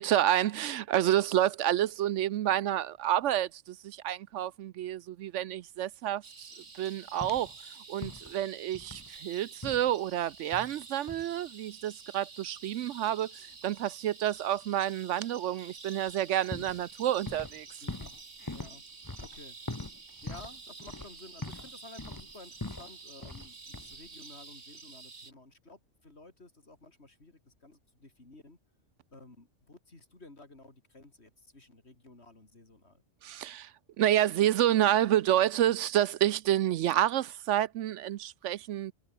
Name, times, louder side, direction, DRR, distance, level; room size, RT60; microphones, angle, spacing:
voice 1, 0.0-6.5 6.8-17.8 33.2-33.7 34.0-38.9, right 12 dB, 75° right, 0.9 m, -29 dB
sound 1, 6.2-25.3, right 4 dB, 55° right, 2.3 m, -50 dB
sound 2, 7.2-7.6 8.0-8.4 8.7-9.2 9.6-9.9 10.5-10.8 11.1-11.3 16.0-16.1 16.5-17.6 17.9-21.7 22.0-22.9 23.2-23.5 23.7-24.1, left 2 dB, 15° left, 1.2 m, -42 dB
voice 2, 17.8-18.1 18.5-18.8 19.2-19.6 20.2-28.6 29.1-33.0, left 2 dB, 55° left, 4.4 m, -53 dB
omnidirectional pair, 1.3 m